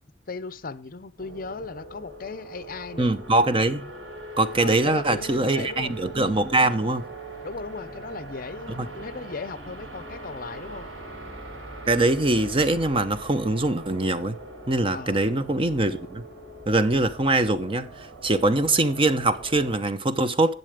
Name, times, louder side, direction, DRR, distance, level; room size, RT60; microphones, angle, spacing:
voice 1, 0.3-3.1 4.6-6.0 7.4-10.9 14.9-15.2, left 4 dB, 50° left, 0.7 m, -37 dB
sound 1, 1.2-19.8, right 2 dB, 90° right, 3.4 m, -41 dB
voice 2, 3.0-3.9 4.4-7.1 8.7-8.9 11.9-14.4 14.7-16.2 16.7-20.5, right 2 dB, 30° right, 0.8 m, -23 dB
11.0 x 7.7 x 5.0 m
head